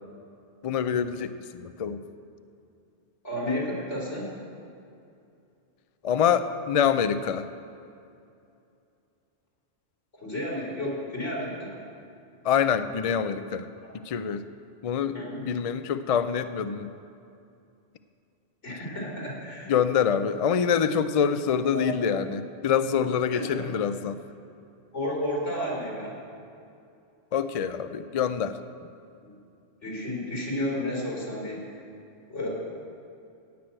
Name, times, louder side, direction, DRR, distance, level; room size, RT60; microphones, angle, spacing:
voice 1, 0.6-2.0 6.0-7.5 12.4-13.7 13.9-14.4 14.8-16.9 19.7-24.2 27.3-28.6, left 7 dB, 50° left, 11 dB, 0.4 m, -26 dB
voice 2, 3.2-4.3 10.2-11.7 13.8-13.9 15.1-15.5 18.6-19.7 21.5-21.9 23.3-23.7 24.9-26.2 29.8-31.6 32.3-32.5, left 1 dB, 90° left, -5 dB, 4.3 m, -32 dB
16.5 x 6.2 x 8.8 m, 2.6 s
omnidirectional pair, 1.2 m